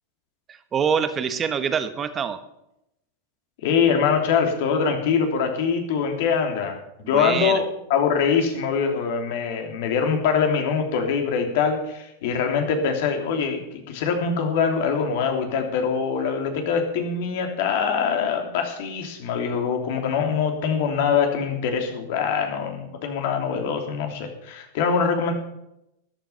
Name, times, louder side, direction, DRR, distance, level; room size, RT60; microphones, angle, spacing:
voice 1, 0.5-2.4 7.0-7.6, right 7 dB, 25° right, 11 dB, 1.1 m, -25 dB
voice 2, 3.6-6.8 7.1-25.3, left 6 dB, 65° left, 4 dB, 3.0 m, -23 dB
13.0 x 10.5 x 5.6 m, 0.84 s
supercardioid pair, 130°, 0 cm